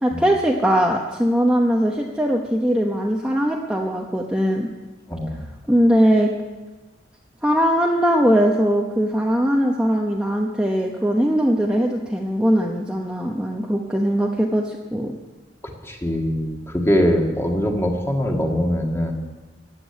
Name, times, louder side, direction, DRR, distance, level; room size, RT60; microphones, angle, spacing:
voice 1, 0.0-4.7 5.7-6.3 7.4-15.2, equal, 5° right, -1 dB, 0.9 m, -20 dB
voice 2, 5.1-5.4 15.8-19.1, equal, 15° left, 2 dB, 1.8 m, -22 dB
15.5 x 7.7 x 9.7 m, 1.3 s
head